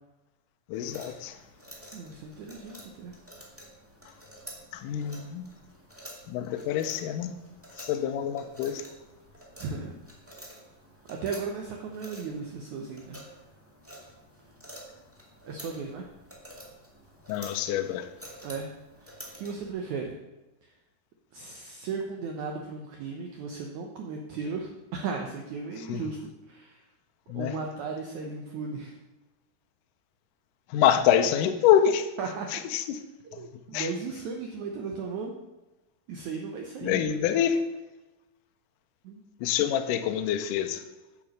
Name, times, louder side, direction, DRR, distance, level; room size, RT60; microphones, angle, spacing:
voice 1, 0.7-1.4 4.7-5.5 6.3-7.3 7.8-8.8 17.3-18.1 25.9-26.0 27.3-27.5 30.7-32.1 32.5-33.0 33.3-33.4 33.7-33.9 36.8-37.6 39.4-40.8, left 9 dB, 80° left, 8 dB, 1.9 m, -26 dB
sound 1, 0.7-19.7, equal, 10° right, 0.6 m, -49 dB
voice 2, 1.9-3.1 9.6-10.0 11.1-13.2 15.5-16.1 18.4-18.7 19.0-20.2 20.6-20.7 21.3-26.8 27.3-29.0 32.2-32.5 33.2-35.3 36.1-37.0 39.0-39.2, right 4 dB, 85° right, 2 dB, 1.6 m, -36 dB
9.1 x 7.0 x 6.4 m, 1.1 s
omnidirectional pair, 4.7 m